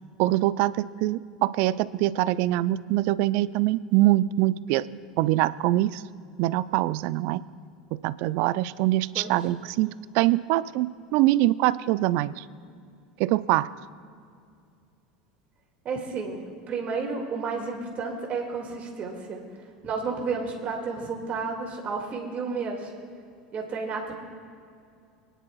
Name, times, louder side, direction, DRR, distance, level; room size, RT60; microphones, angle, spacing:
voice 1, 0.2-4.9 5.2-6.0 6.4-7.4 7.9-12.4 13.2-13.7, right 16 dB, 60° right, 17 dB, 0.4 m, -24 dB
voice 2, 15.8-16.4 16.7-19.4 19.8-22.9 23.5-24.1, right 4 dB, 40° right, 0 dB, 2.1 m, -31 dB
25.0 x 10.0 x 2.3 m, 2.3 s
hypercardioid pair, 80°, 4 cm